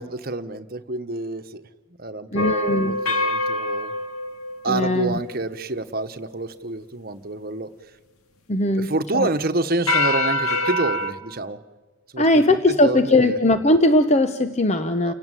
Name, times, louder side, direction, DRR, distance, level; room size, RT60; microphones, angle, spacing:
voice 1, 0.0-1.6 2.0-3.9 4.6-7.7 8.8-11.6 12.1-13.4 15.0-15.1, right 2 dB, 45° right, 9 dB, 1.2 m, -28 dB
voice 2, 2.3-2.9 4.7-5.2 8.5-8.9 9.1-9.3 12.2-15.1, left 1 dB, 30° left, 9 dB, 0.9 m, -19 dB
sound 1, 2.4-5.3 9.9-11.1, left 2 dB, 90° left, 2.3 m, -24 dB
30.0 x 17.5 x 9.1 m, 1.3 s
head